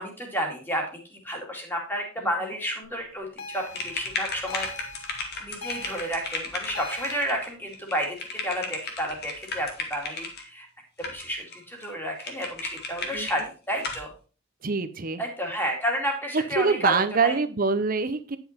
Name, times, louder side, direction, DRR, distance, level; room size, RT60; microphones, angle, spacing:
voice 1, 0.0-4.7 5.4-10.7 11.0-14.1 15.2-17.4, equal, 10° left, 1 dB, 2.3 m, -31 dB
sound 1, 3.4-7.2, left 2 dB, 70° left, 1.4 m, -41 dB
sound 2, 3.7-10.4 11.0-11.6 11.8-11.9 12.2-13.4 13.8-14.1, left 3 dB, 50° left, 1.8 m, -35 dB
voice 2, 14.6-15.2 16.3-18.4, right 4 dB, 40° right, 12 dB, 0.7 m, -25 dB
9.9 x 5.8 x 4.4 m, 0.37 s
head